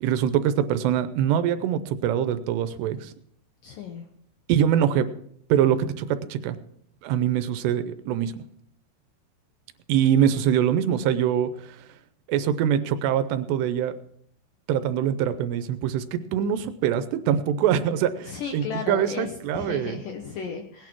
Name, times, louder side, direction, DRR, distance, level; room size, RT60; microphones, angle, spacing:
voice 1, 0.0-3.1 4.5-5.1 5.5-6.6 7.0-8.3 9.9-11.9 12.3-13.9 14.7-20.0, right 9 dB, 80° right, 11 dB, 2.7 m, -24 dB
voice 2, 3.6-4.1 18.2-20.9, left 6 dB, 70° left, 4 dB, 2.1 m, -34 dB
19.0 x 9.8 x 4.5 m, 0.67 s
omnidirectional pair, 5.1 m